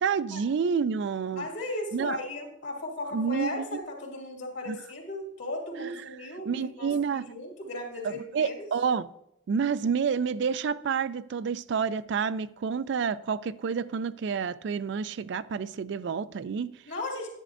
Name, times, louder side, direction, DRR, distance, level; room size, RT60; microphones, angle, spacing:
voice 1, 0.0-1.5 1.9-2.2 3.1-3.6 4.7-4.8 5.8-6.0 6.5-7.3 8.0-9.1 9.5-16.7, right 6 dB, 60° right, 0.3 m, -29 dB
voice 2, 1.3-8.7 16.8-17.3, left 1 dB, 65° left, 2.6 m, -36 dB
9.9 x 9.2 x 2.5 m
head